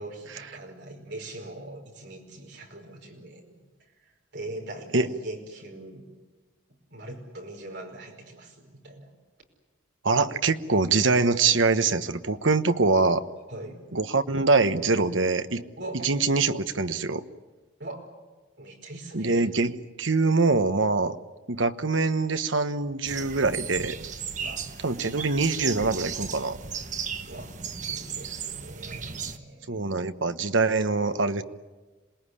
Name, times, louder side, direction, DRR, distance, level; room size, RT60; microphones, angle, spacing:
voice 1, 0.0-3.6 4.0-6.0 6.9-9.1 13.5-13.8 15.8-16.1 17.8-18.1 18.6-19.5 24.4-24.7 25.0-25.7 27.3-27.5 27.9-30.0, right 2 dB, 55° right, 1 dB, 5.2 m, -41 dB
voice 2, 10.0-13.2 13.9-15.6 15.9-17.2 19.1-21.2 21.5-24.0 24.8-26.6 29.7-31.4, right 3 dB, 75° right, 10 dB, 1.1 m, -24 dB
sound 1, 23.0-29.4, right 6 dB, 40° right, 1.2 m, -35 dB
27.0 x 20.0 x 9.9 m, 1.3 s
head